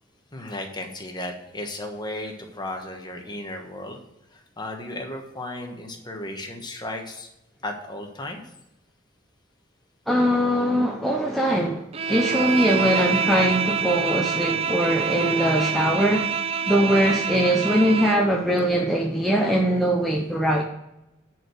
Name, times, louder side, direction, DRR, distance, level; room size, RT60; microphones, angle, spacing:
voice 1, 0.3-4.0 4.3-7.3 7.6-8.4, left 1 dB, 20° left, 1.3 m, -35 dB
voice 2, 10.1-16.4 16.7-20.6, equal, ahead, 0.7 m, -21 dB
Bowed string instrument, 11.9-18.3, right 6 dB, 30° right, 0.4 m, -26 dB
10.0 x 4.6 x 6.3 m
head